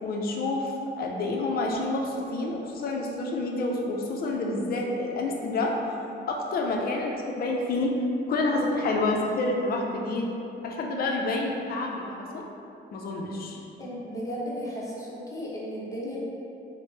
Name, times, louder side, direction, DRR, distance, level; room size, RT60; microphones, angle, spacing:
voice 1, 0.0-5.7 6.3-7.9 8.3-10.2 10.6-12.4 12.9-13.6, left 2 dB, 50° left, 0 dB, 0.4 m, -28 dB
voice 2, 13.8-16.2, equal, 15° left, -6 dB, 0.7 m, -35 dB
3.0 x 2.0 x 3.1 m, 2.7 s
cardioid pair, 90°, 20 cm